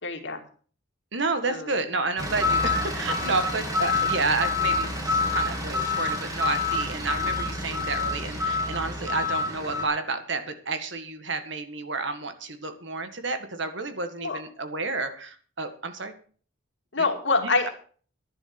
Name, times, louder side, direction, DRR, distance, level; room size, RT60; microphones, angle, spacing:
voice 1, 0.0-0.4 1.5-1.7 14.2-14.4 16.9-17.7, left 3 dB, 60° left, 4 dB, 2.5 m, -25 dB
voice 2, 1.1-16.1 17.0-17.1 17.4-17.7, right 3 dB, 60° right, 9 dB, 1.9 m, -30 dB
sound 1, 2.2-9.8, left 3 dB, 20° right, 2.9 m, -27 dB
11.0 x 11.0 x 6.1 m, 0.43 s
head